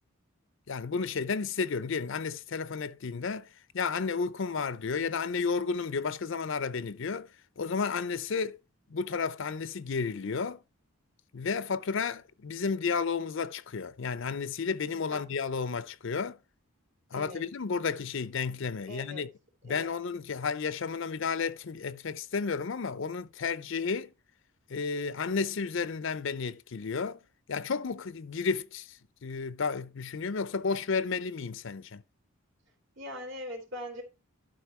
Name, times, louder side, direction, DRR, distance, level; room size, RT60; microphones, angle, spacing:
voice 1, 0.7-3.5 3.7-7.3 7.6-8.6 8.9-10.6 11.3-16.4 17.1-19.3 19.6-24.1 24.7-27.2 27.5-32.0, left 5 dB, 60° left, 0.5 m, -32 dB
voice 2, 17.1-17.4 18.8-19.2 19.7-19.9 32.9-34.0, left 1 dB, 55° right, 3.3 m, -41 dB
11.5 x 5.3 x 4.3 m
head